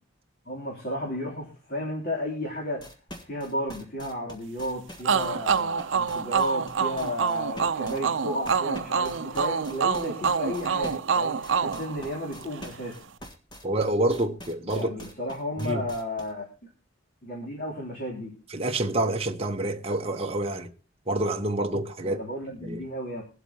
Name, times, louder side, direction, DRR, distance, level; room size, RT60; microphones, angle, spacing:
voice 1, 0.4-2.9 3.2-13.0 14.7-16.5 17.2-18.4 22.0-23.2, equal, 45° left, 3.1 m, -33 dB
sound 1, 2.8-16.3, equal, 20° left, 1.6 m, -44 dB
sound 2, 5.0-12.6, right 6 dB, 65° right, 0.6 m, -27 dB
voice 2, 13.6-14.9 15.6-15.8 18.5-20.7 21.1-22.2 22.6-22.8, right 1 dB, 30° right, 0.9 m, -27 dB
23.5 x 8.1 x 2.8 m
head